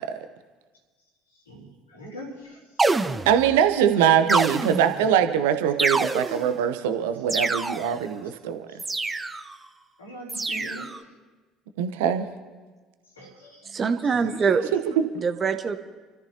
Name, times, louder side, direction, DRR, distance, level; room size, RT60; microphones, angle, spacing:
voice 1, 1.5-2.6 10.0-10.9 13.2-13.7, equal, 85° left, -3 dB, 4.0 m, -41 dB
sound 1, 2.8-3.6 4.3-5.1 5.8-6.6 7.3-8.0 8.8-9.5 10.3-11.0, right 3 dB, 20° right, 0.8 m, -26 dB
voice 2, 3.2-8.7 11.8-12.3 14.7-15.1, right 9 dB, 70° right, 8 dB, 0.9 m, -22 dB
voice 3, 13.6-14.7 15.1-15.8, right 5 dB, 35° right, 8 dB, 1.2 m, -24 dB
29.0 x 13.5 x 2.9 m, 1.3 s
figure-of-eight pair, 55°, 0 cm